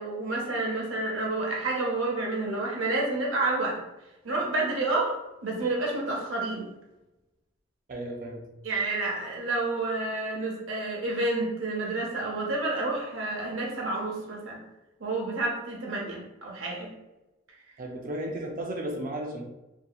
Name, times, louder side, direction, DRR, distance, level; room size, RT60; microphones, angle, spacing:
voice 1, 0.0-3.8 4.2-5.2 5.4-6.7 8.6-14.6 15.0-16.9, right 2 dB, 80° right, -1 dB, 0.7 m, -29 dB
voice 2, 7.9-8.4 17.8-19.4, right 1 dB, 45° right, 0 dB, 0.4 m, -34 dB
2.8 x 2.7 x 2.3 m, 0.98 s
head